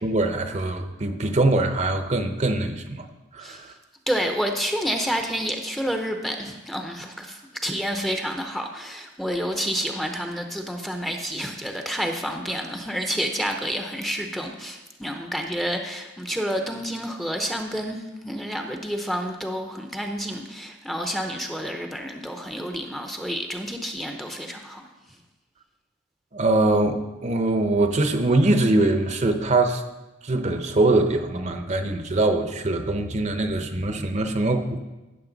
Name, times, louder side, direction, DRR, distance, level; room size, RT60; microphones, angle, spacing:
voice 1, 0.0-3.1 3.3-3.7 26.3-29.8 30.2-34.8, right 2 dB, 35° right, 7 dB, 0.7 m, -22 dB
voice 2, 4.1-24.8, equal, ahead, 4 dB, 0.7 m, -29 dB
15.0 x 6.5 x 4.0 m, 1.1 s
head